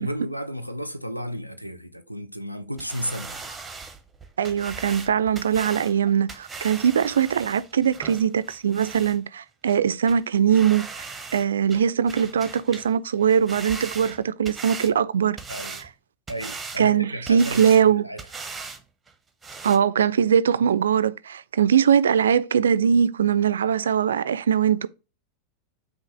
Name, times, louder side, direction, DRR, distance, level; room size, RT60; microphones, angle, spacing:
voice 1, 0.0-3.4 15.5-15.8 16.3-17.7 18.0-18.2, equal, 90° left, 0.5 m, -33 dB
sound 1, 2.8-9.2 9.7-9.8 10.1-10.2 10.5-11.4 11.7-12.9 13.2-14.9 15.4-15.9 16.3-16.8 17.2-17.8 18.2-18.8 19.1-19.2 19.4-19.8, right 4 dB, 15° right, 0.7 m, -38 dB
voice 2, 4.4-10.9 11.3-15.4 16.8-18.1 19.6-24.9, right 8 dB, 65° right, 0.3 m, -21 dB
5.8 x 2.4 x 3.2 m
figure-of-eight pair, 90°, 0 cm